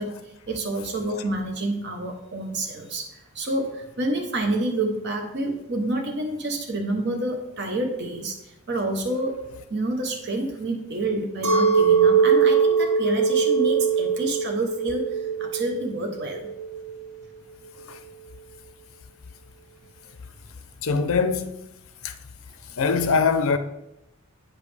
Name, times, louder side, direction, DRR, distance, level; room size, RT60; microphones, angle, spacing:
voice 1, 0.0-9.4 9.7-16.5, right 2 dB, 50° right, 0.8 m, -28 dB
Chink clink, 11.4-16.9, right 6 dB, 70° right, 1.9 m, -21 dB
voice 2, 20.8-21.7 22.0-22.1 22.8-23.6, left 5 dB, 65° left, 0.6 m, -22 dB
8.9 x 5.2 x 3.3 m
head